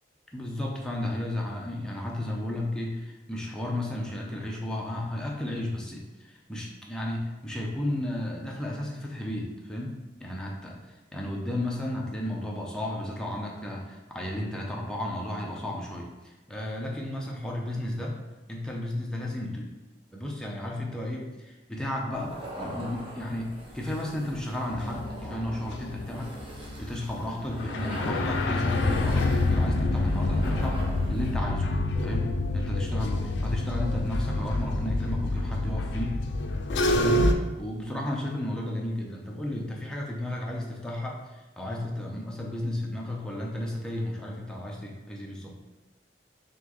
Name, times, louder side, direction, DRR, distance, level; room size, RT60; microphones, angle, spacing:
voice 1, 0.3-18.2 18.5-19.7 20.1-26.4 26.8-30.8 31.1-31.7 32.0-36.2 36.9-45.6, left 1 dB, 5° left, -3 dB, 0.6 m, -33 dB
sound 1, 22.1-31.5, equal, 30° right, 0.8 m, -43 dB
sound 2, 24.7-37.3, left 2 dB, 70° left, 0.4 m, -27 dB
4.2 x 3.0 x 3.0 m, 1.1 s
head